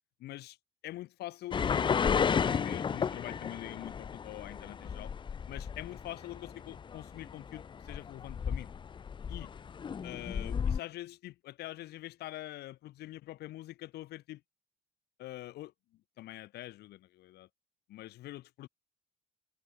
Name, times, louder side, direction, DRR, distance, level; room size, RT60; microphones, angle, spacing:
voice 1, 0.2-0.6 0.8-5.1 5.5-8.7 9.3-9.5 10.0-14.4 15.2-15.7 16.2-17.5 17.9-18.7, left 15 dB, 75° left, 2.0 m, -44 dB
sound 1, 1.5-10.8, left 7 dB, 30° left, 0.5 m, -33 dB
cardioid pair, 110°, 17 cm